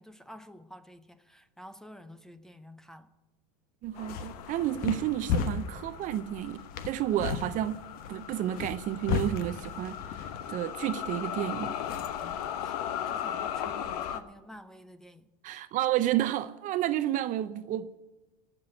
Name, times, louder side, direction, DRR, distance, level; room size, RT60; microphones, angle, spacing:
voice 1, 0.0-3.1 12.6-15.6, equal, 5° left, 0.7 m, -50 dB
sound 1, 3.8-12.4, left 6 dB, 50° left, 1.2 m, -36 dB
voice 2, 3.8-7.8 8.1-11.7 15.4-18.0, right 13 dB, 40° right, 0.6 m, -31 dB
sound 2, 4.0-14.2, left 9 dB, 75° left, 1.0 m, -38 dB
17.5 x 6.1 x 9.7 m
supercardioid pair, 125°, 20 cm